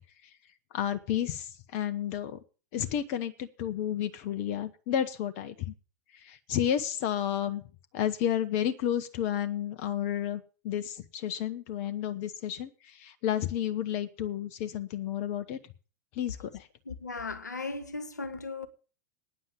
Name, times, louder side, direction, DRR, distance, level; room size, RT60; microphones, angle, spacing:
voice 1, 0.7-2.4 2.7-5.7 6.1-7.6 7.9-15.6 16.1-16.7, left 10 dB, 50° left, 0.9 m, -31 dB
voice 2, 16.8-18.7, left 3 dB, 85° left, 1.2 m, -37 dB
9.6 x 7.6 x 7.6 m
figure-of-eight pair, 95°, 9 cm